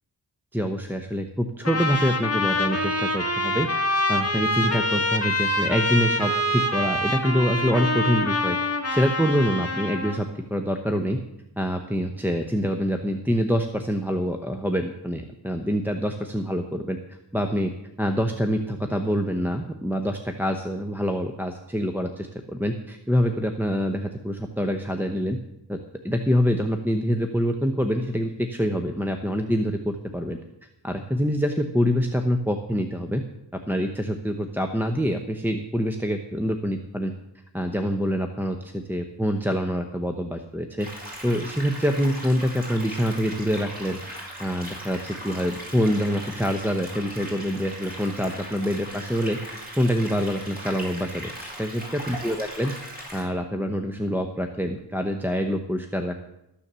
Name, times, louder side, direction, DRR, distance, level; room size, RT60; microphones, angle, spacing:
voice 1, 0.5-8.6 8.9-11.2 11.6-17.0 17.3-17.7 18.0-25.4 25.7-25.8 26.0-30.4 30.8-33.2 33.7-37.1 37.5-40.9 41.2-44.0 44.4-49.5 49.8-52.7 53.1-56.2, equal, 5° right, 3 dB, 0.9 m, -25 dB
Trumpet, 1.6-10.2, left 1 dB, 35° left, 1.6 m, -25 dB
sound 1, 40.8-53.2, equal, 20° right, 4.7 m, -39 dB
13.5 x 7.2 x 6.8 m, 0.86 s
wide cardioid pair, 60°, 43 cm